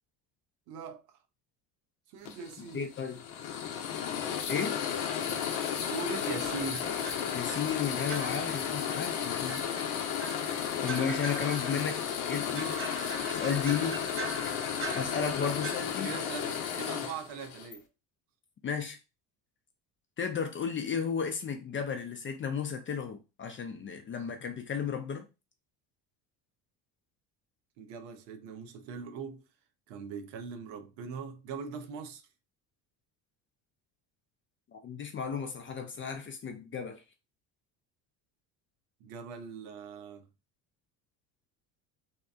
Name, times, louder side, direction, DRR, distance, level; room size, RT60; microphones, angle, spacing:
voice 1, 0.7-1.2 2.1-2.9 5.8-6.9 16.0-17.8 27.8-29.4 29.9-32.2 39.0-40.3, right 5 dB, 75° right, 0.6 m, -41 dB
sound 1, 2.2-17.8, left 8 dB, 70° left, 0.7 m, -34 dB
voice 2, 2.7-3.2 4.5-4.8 7.3-9.6 10.8-12.0 12.3-12.8 13.3-14.0 14.9-16.2 18.6-19.0 20.2-25.3 34.7-37.0, left 7 dB, 25° left, 0.4 m, -33 dB
sound 2, 6.4-15.8, right 3 dB, 25° right, 0.7 m, -43 dB
2.7 x 2.2 x 2.4 m
hypercardioid pair, 70°, 49 cm